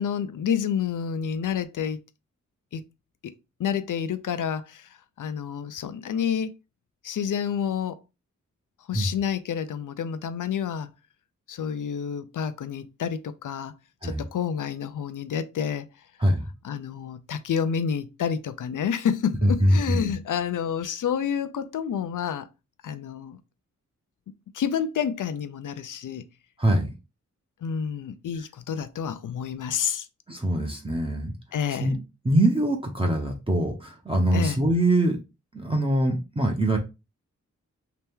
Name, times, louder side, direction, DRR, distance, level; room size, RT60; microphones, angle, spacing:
voice 1, 0.0-2.0 2.7-2.8 3.2-3.3 3.6-6.5 7.0-8.0 8.9-10.9 11.5-13.7 14.0-15.9 16.6-22.5 22.8-23.4 24.5-26.2 27.6-30.1 31.5-31.9 34.3-34.6, left 8 dB, 85° left, 0.5 m, -29 dB
voice 2, 19.4-20.1 26.6-26.9 30.3-31.3 31.7-32.0 32.2-35.2 35.5-36.8, right 1 dB, 15° right, 0.7 m, -23 dB
3.2 x 2.9 x 3.4 m
wide cardioid pair, 120°, 30 cm